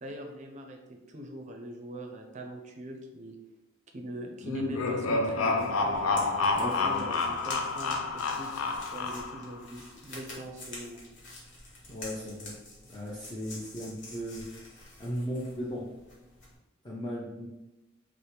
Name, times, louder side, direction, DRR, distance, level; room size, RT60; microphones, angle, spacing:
voice 1, 0.0-3.4 3.9-6.0 6.6-11.0, right 1 dB, 35° right, 2 dB, 0.5 m, -42 dB
sound 1, 4.4-9.5, left 3 dB, 90° left, 0.4 m, -29 dB
sound 2, 5.6-16.6, left 2 dB, 60° left, 1.0 m, -47 dB
voice 2, 6.6-7.1 11.9-12.5 12.8-14.6 15.0-15.8 16.8-17.5, equal, 20° left, -5 dB, 0.5 m, -37 dB
3.3 x 2.1 x 4.3 m, 1.0 s
head